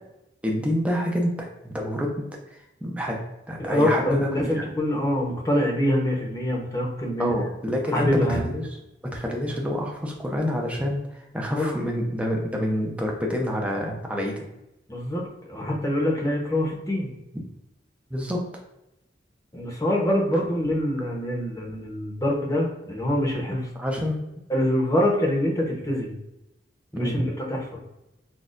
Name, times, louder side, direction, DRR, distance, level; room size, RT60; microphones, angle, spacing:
voice 1, 0.4-3.2 3.5-4.3 4.5-4.6 7.2-8.7 9.0-14.4 17.3-17.4 18.1-18.4 23.8-24.2 26.9-27.2, equal, 5° right, 0 dB, 0.7 m, -27 dB
voice 2, 3.6-7.3 7.9-8.4 11.5-11.8 14.9-17.1 19.5-23.7 24.5-26.2 26.9-27.8, left 1 dB, 20° left, -1 dB, 0.9 m, -25 dB
6.2 x 2.4 x 2.5 m, 0.90 s
head